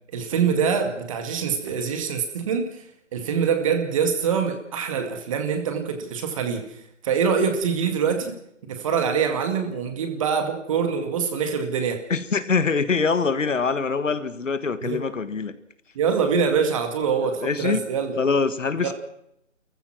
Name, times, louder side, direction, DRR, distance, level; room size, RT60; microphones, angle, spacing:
voice 1, 0.1-2.7 3.1-6.8 7.0-8.4 8.7-12.0 14.8-15.0 16.0-18.2 18.8-18.9, right 6 dB, 25° right, 6 dB, 2.1 m, -24 dB
voice 2, 12.1-15.6 17.2-17.8 18.2-18.9, left 4 dB, 75° left, 12 dB, 1.7 m, -24 dB
30.0 x 15.0 x 6.1 m, 0.77 s
figure-of-eight pair, 155°, 38 cm